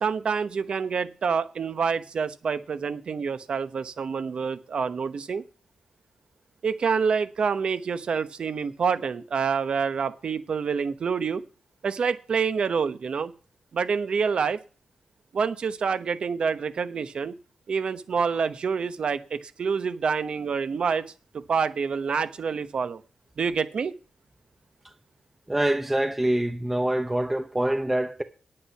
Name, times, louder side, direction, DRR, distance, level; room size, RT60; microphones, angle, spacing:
voice 1, 0.0-5.4 6.6-11.4 11.8-13.3 13.7-14.6 15.3-17.3 17.7-21.0 21.3-23.0 23.4-23.9, right 6 dB, 55° right, 1.0 m, -27 dB
voice 2, 25.5-28.2, right 1 dB, 10° right, 0.7 m, -25 dB
9.8 x 8.8 x 5.7 m
wide cardioid pair, 140°, 2 cm